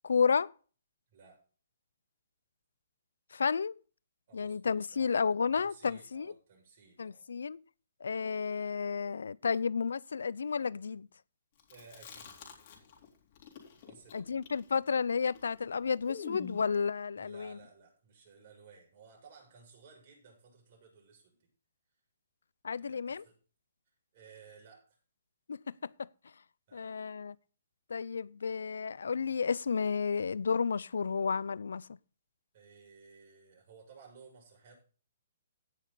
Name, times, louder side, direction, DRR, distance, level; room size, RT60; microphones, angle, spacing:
voice 1, 0.0-0.5 3.3-3.8 4.3-6.3 7.0-7.6 8.0-11.1 14.1-17.6 22.6-23.2 25.5-25.9 26.7-27.3 27.9-31.9, left 5 dB, 85° left, 0.4 m, -32 dB
voice 2, 1.1-1.4 4.3-5.2 5.5-7.3 11.7-12.4 13.8-14.4 17.2-21.5 22.7-23.3 24.1-24.8 26.7-26.9 32.5-34.8, right 5 dB, 45° right, 6.7 m, -57 dB
Chewing mastication, 11.6-13.1 13.3-16.7, left 7 dB, 40° left, 3.9 m, -47 dB
16.5 x 6.6 x 4.0 m
hypercardioid pair, 155°, 0 cm